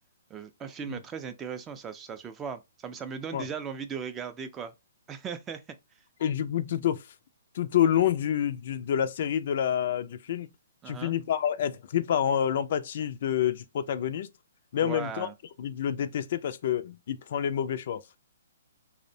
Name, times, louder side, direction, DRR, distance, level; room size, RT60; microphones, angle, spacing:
voice 1, 0.3-4.7 5.1-5.6 10.8-11.2 14.8-15.3, right 6 dB, 20° right, 0.4 m, -38 dB
voice 2, 6.2-7.1 7.5-10.5 10.9-14.3 14.7-15.3 15.6-18.0, left 9 dB, 55° left, 0.3 m, -28 dB
2.6 x 2.0 x 2.5 m
hypercardioid pair, 135°, 0 cm